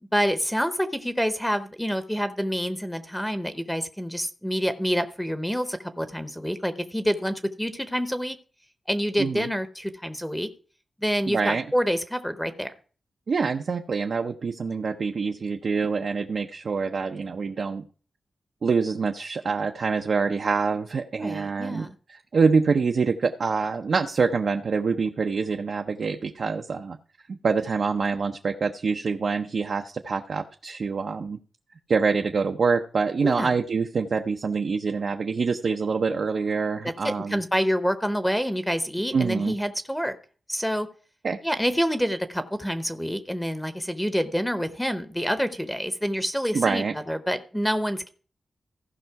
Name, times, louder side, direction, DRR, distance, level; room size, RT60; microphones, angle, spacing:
voice 1, 0.1-8.4 8.9-10.5 11.0-12.7 21.2-21.9 33.2-33.5 36.8-40.2 40.5-40.9 41.4-48.1, equal, 5° left, 10 dB, 0.7 m, -27 dB
voice 2, 11.3-11.6 13.3-17.8 18.6-27.0 27.3-31.4 31.9-37.4 39.1-39.5 41.2-41.4 46.5-46.9, right 5 dB, 60° right, 5 dB, 0.6 m, -25 dB
15.0 x 5.5 x 4.6 m, 0.40 s
wide cardioid pair, 115°, 0 cm